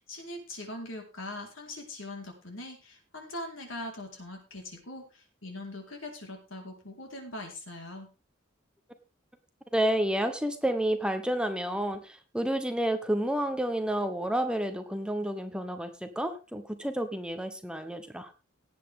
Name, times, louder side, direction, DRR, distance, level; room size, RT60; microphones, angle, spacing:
voice 1, 0.0-8.1, left 1 dB, 80° left, 2 dB, 4.3 m, -41 dB
voice 2, 9.7-18.3, right 1 dB, 5° right, 7 dB, 1.0 m, -30 dB
17.5 x 8.5 x 3.7 m, 0.30 s
head